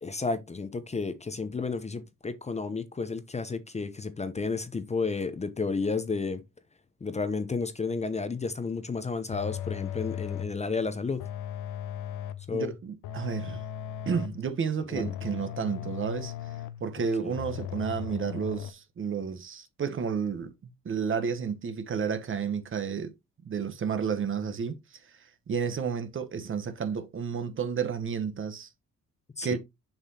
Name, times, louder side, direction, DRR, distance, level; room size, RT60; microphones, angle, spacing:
voice 1, 0.0-6.4 7.0-11.2 12.5-12.7 14.9-15.1 17.2-17.3 29.4-29.6, left 4 dB, 20° left, 0.7 m, -32 dB
sound 1, 9.3-10.6 11.2-12.5 13.0-14.5 15.0-16.9 17.3-18.7, left 10 dB, 85° left, 0.7 m, -37 dB
voice 2, 12.5-13.6 14.1-16.3 16.8-20.5 20.8-23.1 23.4-28.7 29.4-29.6, right 6 dB, 40° right, 1.0 m, -31 dB
7.0 x 5.6 x 2.8 m
cardioid pair, 90°, 30 cm